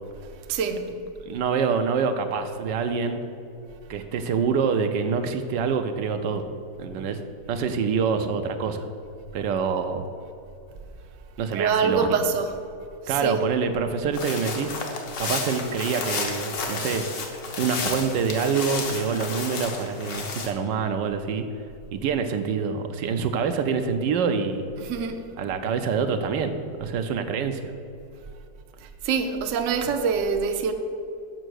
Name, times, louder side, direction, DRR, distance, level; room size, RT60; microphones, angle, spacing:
voice 1, 0.2-0.9 11.5-12.6 13.0-13.4 24.8-25.3 28.8-30.7, right 5 dB, 60° right, 0.8 m, -25 dB
voice 2, 1.3-3.2 3.9-6.4 6.8-7.2 7.5-8.9 9.3-10.0 11.4-12.0 13.1-14.7 15.2-17.1 17.6-21.5 21.9-24.7 25.4-27.7, right 6 dB, 80° right, 1.3 m, -26 dB
sound 1, 14.1-20.5, left 4 dB, 70° left, 1.7 m, -32 dB
7.8 x 6.0 x 6.3 m
omnidirectional pair, 2.0 m